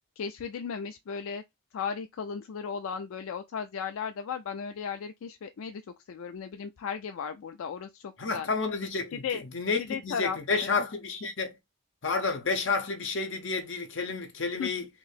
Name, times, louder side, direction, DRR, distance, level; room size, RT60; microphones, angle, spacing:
voice 1, 0.2-1.4 1.7-5.8 6.1-8.5 9.2-9.4 9.8-10.7 14.6-14.7, left 6 dB, 80° left, 0.4 m, -35 dB
voice 2, 8.2-11.6 12.0-14.9, left 4 dB, 60° left, 0.9 m, -30 dB
3.0 x 2.7 x 3.9 m
head